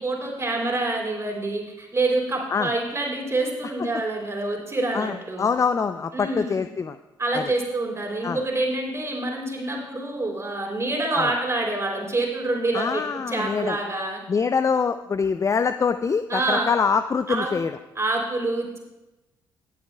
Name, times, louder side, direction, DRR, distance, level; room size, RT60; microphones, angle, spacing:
voice 1, 0.0-5.4 6.1-6.6 7.2-13.0 13.3-14.2 16.3-16.7 17.3-17.5 17.9-18.8, right 2 dB, 25° right, 0 dB, 3.1 m, -26 dB
voice 2, 4.9-7.0 7.3-7.5 8.2-8.4 11.1-11.3 12.7-13.8 14.3-17.8, left 5 dB, 30° left, 10 dB, 0.4 m, -24 dB
18.0 x 8.3 x 2.2 m, 1.0 s
hypercardioid pair, 45°, 11 cm